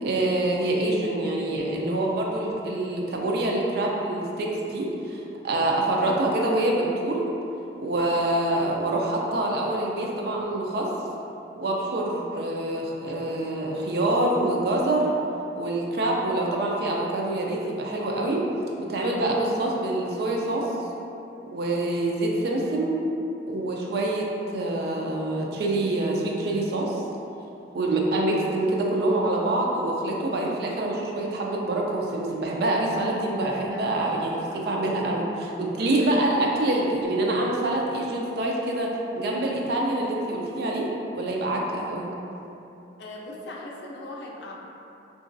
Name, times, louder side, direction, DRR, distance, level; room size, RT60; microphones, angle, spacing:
voice 1, 0.0-7.3 7.8-10.9 11.6-15.1 15.6-18.4 18.8-20.7 21.5-23.0 23.5-24.3 24.5-27.0 27.7-40.9 41.1-42.1, right 1 dB, 60° right, -1 dB, 0.4 m, -26 dB
voice 2, 33.6-34.7 35.8-36.2 43.0-44.5, left 2 dB, 70° left, -2 dB, 0.4 m, -41 dB
2.9 x 2.5 x 2.5 m, 2.8 s
head